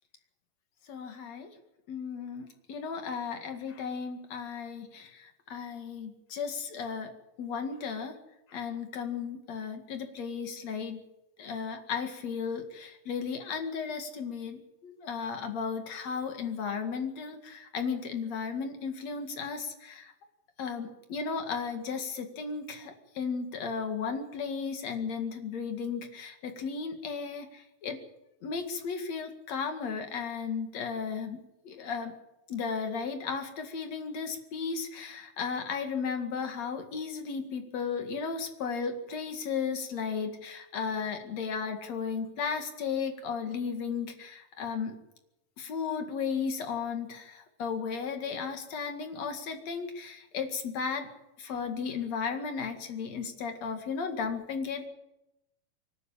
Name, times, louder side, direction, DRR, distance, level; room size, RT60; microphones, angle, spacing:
voice 1, 0.9-1.5 1.9-7.1 7.4-8.1 8.5-11.0 11.4-20.1 20.6-28.0 28.4-32.1 32.5-44.9 45.6-51.1 51.4-54.9, left 5 dB, 50° left, 5 dB, 2.9 m, -35 dB
24.5 x 12.0 x 8.9 m, 0.91 s
omnidirectional pair, 4.4 m